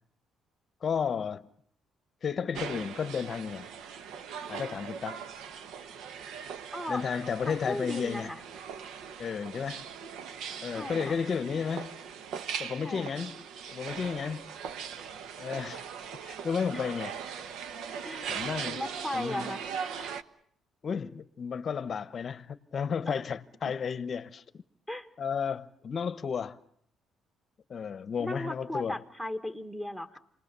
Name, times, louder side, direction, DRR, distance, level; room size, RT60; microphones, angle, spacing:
voice 1, 0.8-1.5 2.2-3.7 4.5-5.2 6.9-8.3 9.2-9.9 10.6-12.0 12.6-13.4 13.7-14.5 15.4-15.8 16.2-17.1 18.3-18.8 19.1-19.5 20.8-24.6 25.2-26.6 27.7-29.0, left 6 dB, 35° left, 0.9 m, -33 dB
sound 1, 2.5-20.2, right 7 dB, 75° right, 1.1 m, -40 dB
voice 2, 6.7-7.0 7.4-8.4 10.7-11.2 12.8-13.2 16.7-16.8 18.0-18.3 18.7-19.6 23.1-23.2 24.9-25.1 28.2-30.2, left 1 dB, 5° right, 1.5 m, -36 dB
29.5 x 20.5 x 6.8 m
cardioid pair, 145°, 0 cm